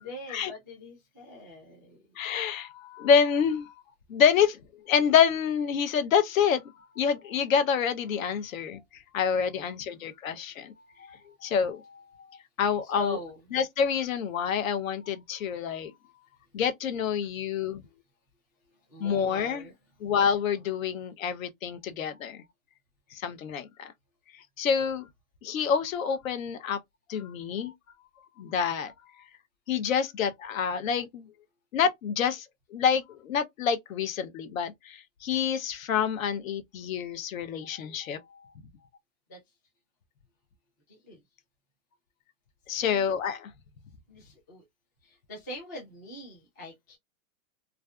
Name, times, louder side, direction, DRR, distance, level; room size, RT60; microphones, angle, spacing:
voice 1, 0.0-2.0 9.5-10.1 12.8-13.4 18.9-19.7 39.3-39.4 40.9-41.2 42.8-43.1 44.1-44.6 45.0-47.0, left 1 dB, 15° left, 0.3 m, -43 dB
voice 2, 2.2-3.7 4.1-4.6 4.9-6.6 7.0-8.8 9.1-10.7 11.0-11.2 11.4-12.0 12.6-13.2 13.5-15.9 16.5-17.8 19.0-19.7 20.0-22.4 23.1-23.9 24.6-25.1 25.4-26.8 27.1-27.7 28.4-28.9 29.7-31.3 31.7-32.5 32.7-38.2 42.7-43.4, left 7 dB, 75° left, 0.7 m, -27 dB
2.4 x 2.3 x 2.2 m
hypercardioid pair, 155°, 41 cm